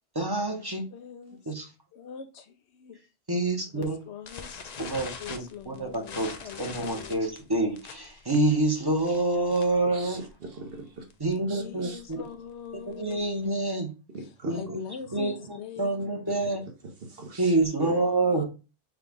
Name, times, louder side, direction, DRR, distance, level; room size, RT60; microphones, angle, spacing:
voice 1, 0.1-0.8 1.5-1.7 3.3-4.0 4.8-10.2 11.2-12.2 13.0-13.9 14.5-14.8 15.1-16.6 17.4-18.4, right 2 dB, 20° right, 0.8 m, -27 dB
voice 2, 0.9-1.5 1.9-3.0 3.7-4.8 5.2-7.3 11.5-13.2 14.5-16.1 18.2-18.4, left 7 dB, 70° left, 0.9 m, -43 dB
sound 1, 4.3-9.9 10.2-10.4 10.7-10.8 11.1-11.4 11.9-13.4, left 5 dB, 45° left, 0.5 m, -42 dB
voice 3, 9.9-11.1 11.5-12.0 14.1-14.8 15.1-15.2 16.3-16.5 17.0-17.6, right 2 dB, 55° right, 1.1 m, -42 dB
6.1 x 2.3 x 3.7 m
omnidirectional pair, 1.2 m